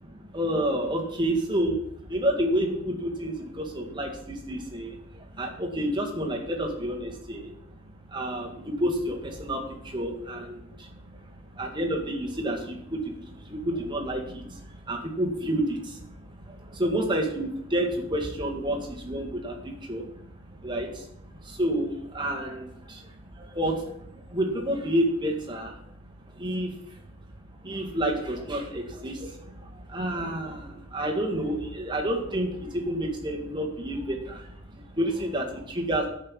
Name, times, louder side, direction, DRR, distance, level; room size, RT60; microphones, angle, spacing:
voice 1, 0.2-36.1, right 1 dB, 20° right, 0 dB, 1.8 m, -30 dB
11.0 x 5.7 x 7.4 m, 0.73 s
head